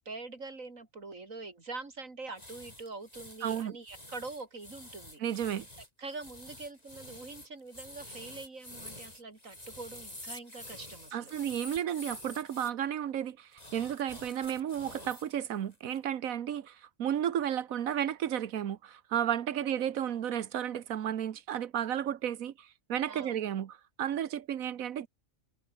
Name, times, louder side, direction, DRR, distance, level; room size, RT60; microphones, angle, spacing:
voice 1, 0.0-5.2 6.0-11.3 19.5-19.7 23.1-23.4, right 3 dB, 70° right, 4.2 m, -44 dB
sound 1, 2.4-12.7 13.5-15.3 15.7-16.0, left 1 dB, 30° left, 6.1 m, -48 dB
voice 2, 3.4-3.8 5.2-5.7 11.1-25.1, right 10 dB, 90° right, 1.4 m, -33 dB
omnidirectional pair, 1.4 m